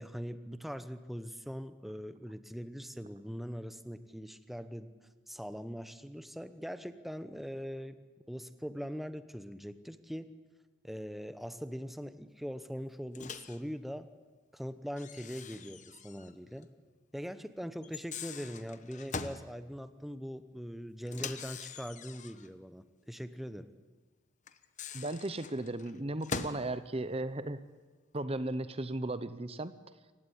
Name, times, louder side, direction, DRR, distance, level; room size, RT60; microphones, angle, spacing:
voice 1, 0.0-4.9 5.3-10.3 10.8-14.1 14.5-16.7 17.1-23.7, equal, ahead, 11 dB, 0.8 m, -42 dB
Microwave oven, 13.1-13.6 15.0-16.3 16.6-16.7 17.8-19.4 21.1-22.5 24.5-26.7, left 5 dB, 35° left, 1.2 m, -42 dB
voice 2, 24.9-27.6 28.1-29.7, right 2 dB, 30° right, 13 dB, 0.8 m, -36 dB
28.0 x 16.0 x 10.0 m, 1.3 s
head